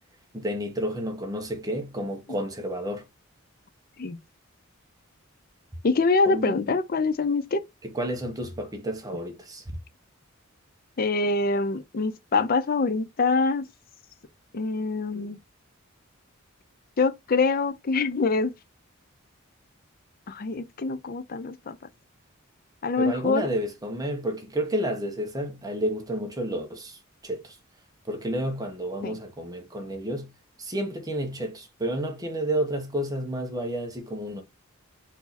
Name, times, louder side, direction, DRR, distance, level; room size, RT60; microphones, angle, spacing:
voice 1, 0.3-3.0 6.2-6.7 7.8-9.6 23.0-27.6 28.1-30.3 30.6-34.4, right 1 dB, 15° right, 1.0 m, -31 dB
voice 2, 5.8-7.6 11.0-13.7 14.5-15.4 17.0-18.5 20.3-21.8 22.8-23.5 29.0-29.2, left 3 dB, 45° left, 0.5 m, -25 dB
4.6 x 2.7 x 4.1 m
head